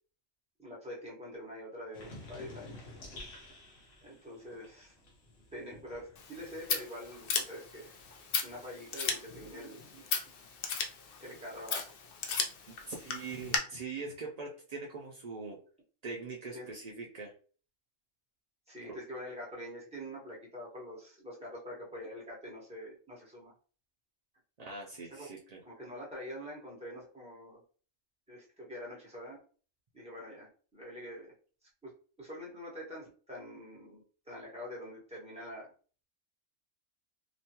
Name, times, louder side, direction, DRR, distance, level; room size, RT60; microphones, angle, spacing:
voice 1, 0.6-2.8 4.0-4.9 5.5-7.9 8.4-10.1 11.2-11.9 16.5-16.7 18.7-23.5 25.1-25.3 25.6-27.6 28.3-29.4 29.9-31.3 31.8-31.9 32.2-35.7, equal, 5° right, -5 dB, 1.0 m, -45 dB
sound 1, 1.9-7.3 7.6-9.3, left 1 dB, 75° left, 1.2 m, -52 dB
Scissors, 6.2-13.6, left 5 dB, 60° left, 0.6 m, -37 dB
voice 2, 12.7-15.6 16.0-17.3 18.8-18.9 24.6-25.6, right 4 dB, 70° right, -2 dB, 0.3 m, -42 dB
3.0 x 2.2 x 2.8 m, 0.40 s
omnidirectional pair, 1.3 m